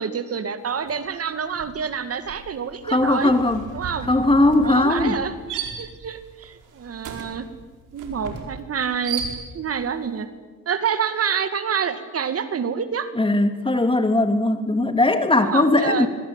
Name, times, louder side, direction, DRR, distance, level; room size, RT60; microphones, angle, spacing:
voice 1, 0.0-3.3 3.7-4.1 4.6-7.5 7.9-9.2 9.5-10.3 10.7-13.1 15.4-16.1, right 7 dB, 50° right, 11 dB, 2.2 m, -27 dB
sound 1, 0.8-1.1 1.4-9.8, right 6 dB, 85° right, 5.1 m, -36 dB
voice 2, 2.9-3.6 4.1-5.2 13.2-16.1, left 2 dB, 15° left, 8 dB, 3.0 m, -19 dB
25.0 x 23.5 x 9.1 m, 1.3 s
cardioid pair, 90°, 30 cm